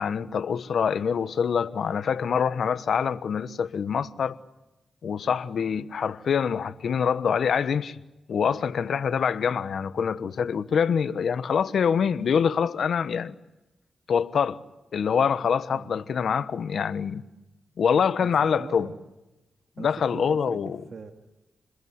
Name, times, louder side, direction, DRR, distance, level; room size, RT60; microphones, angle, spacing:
voice 1, 0.0-4.3 5.0-8.0 8.3-13.3 14.1-14.6 14.9-17.2 17.8-18.9 19.8-20.8, left 7 dB, 75° left, 1.2 m, -25 dB
voice 2, 15.7-16.1 18.2-18.3 18.6-19.0 19.8-20.6 20.9-21.1, right 5 dB, 60° right, 2.4 m, -41 dB
29.0 x 21.5 x 9.6 m
cardioid pair, 55°, 0 cm